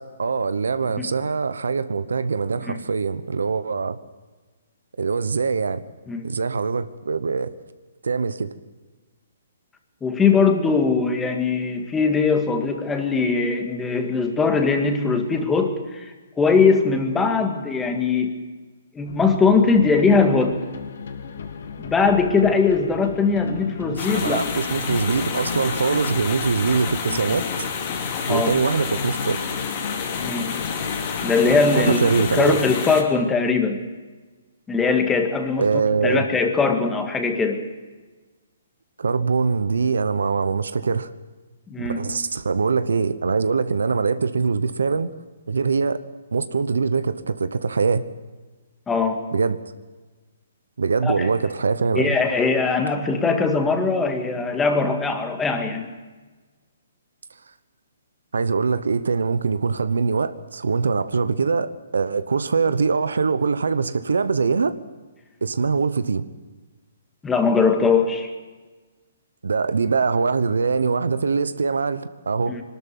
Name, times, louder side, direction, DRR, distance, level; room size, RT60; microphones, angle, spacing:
voice 1, 0.0-4.0 5.0-5.8 6.2-7.5 8.0-8.5 23.9-27.5 28.3-29.4 31.8-32.6 35.6-36.2 39.0-41.1 41.8-45.1 45.5-46.0 46.3-48.0 49.3-49.6 50.8-52.2 58.3-64.7 65.4-66.2 69.4-72.6, right 5 dB, 80° right, 1.0 m, -23 dB
voice 2, 10.0-18.3 19.0-20.5 21.8-24.4 28.3-28.5 30.2-30.5 31.2-33.8 34.7-35.6 36.0-37.6 41.7-42.0 48.9-49.2 51.0-51.3 52.0-55.9 67.2-68.3 72.5-72.6, left 4 dB, 10° left, 1.9 m, -21 dB
sound 1, 19.0-32.6, left 6 dB, 65° left, 1.8 m, -34 dB
sound 2, 24.0-33.0, left 6 dB, 40° left, 3.2 m, -29 dB
21.5 x 13.0 x 9.3 m
hypercardioid pair, 140°, 0 cm